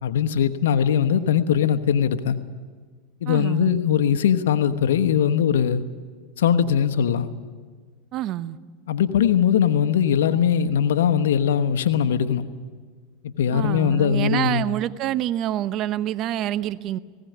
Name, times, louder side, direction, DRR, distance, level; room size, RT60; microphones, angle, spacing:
voice 1, 0.0-2.4 3.2-5.8 6.4-7.3 8.9-12.5 13.2-14.6, left 8 dB, 85° left, 10 dB, 1.1 m, -20 dB
voice 2, 3.3-3.8 8.1-8.6 13.5-17.0, right 13 dB, 45° right, 14 dB, 0.8 m, -26 dB
18.5 x 17.0 x 9.3 m, 1.5 s
supercardioid pair, 110°, 0 cm